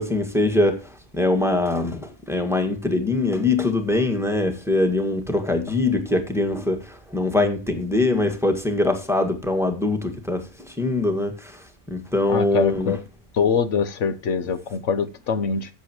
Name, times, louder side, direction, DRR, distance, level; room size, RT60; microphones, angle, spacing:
voice 1, 0.0-13.0, left 2 dB, ahead, 1.7 m, -23 dB
voice 2, 12.3-13.0 13.4-15.7, left 6 dB, 80° left, 1.2 m, -23 dB
14.5 x 7.1 x 3.0 m
omnidirectional pair, 1.3 m